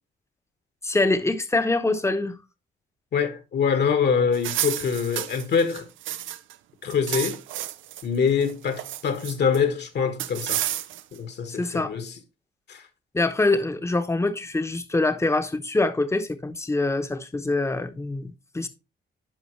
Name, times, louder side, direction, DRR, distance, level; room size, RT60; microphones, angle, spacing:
voice 1, 0.8-2.4 11.5-11.9 13.1-18.7, left 2 dB, 15° left, 1.0 m, -24 dB
voice 2, 3.1-5.9 6.8-7.4 8.0-10.7 11.1-12.1 12.7-12.9, left 6 dB, 60° left, 1.5 m, -24 dB
sound 1, 4.3-6.5 6.8-8.0 8.4-9.6 10.2-11.2, right 12 dB, 75° right, 0.6 m, -31 dB
11.0 x 5.2 x 3.2 m
cardioid pair, 90°, 20 cm